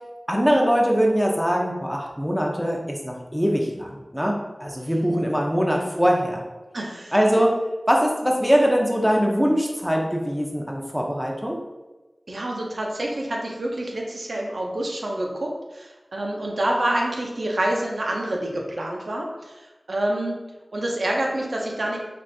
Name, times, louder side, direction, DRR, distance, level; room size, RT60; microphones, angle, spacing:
voice 1, 0.3-6.4 7.1-7.5 7.9-11.6, equal, ahead, -1 dB, 0.6 m, -22 dB
voice 2, 6.7-7.1 12.3-20.4 20.7-22.0, right 1 dB, 80° right, -1 dB, 0.5 m, -27 dB
3.4 x 2.4 x 2.6 m, 1.1 s
wide cardioid pair, 45°, 0 cm